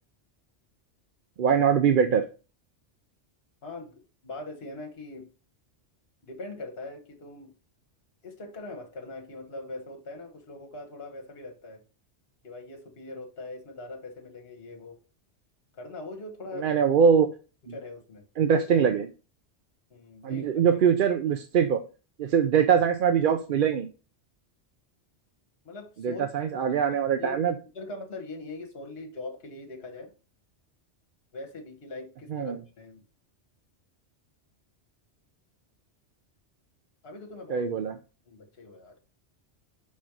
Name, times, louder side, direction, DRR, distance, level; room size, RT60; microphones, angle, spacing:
voice 1, 1.4-2.2 16.6-17.3 18.4-19.1 20.2-21.8 22.2-23.9 26.0-27.5 32.3-32.6 37.5-37.9, right 7 dB, 55° right, 8 dB, 0.6 m, -22 dB
voice 2, 3.6-3.9 4.2-5.3 6.3-7.5 8.2-11.8 12.4-15.0 15.7-16.7 17.6-18.2 19.9-20.7 25.6-26.3 26.7-26.8 27.2-27.4 27.7-30.1 31.3-33.0 37.0-37.7 38.3-39.0, left 2 dB, 60° left, 3 dB, 1.5 m, -41 dB
5.1 x 4.2 x 5.9 m, 0.34 s
omnidirectional pair, 1.2 m